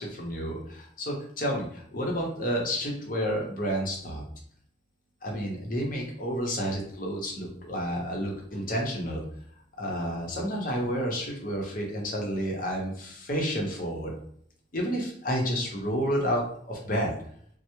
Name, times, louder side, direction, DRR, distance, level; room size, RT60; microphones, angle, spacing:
voice 1, 0.0-4.2 5.2-9.2 9.8-14.1 14.7-16.4 16.7-17.1, equal, 45° left, 0 dB, 0.7 m, -30 dB
3.2 x 2.0 x 2.9 m, 0.65 s
head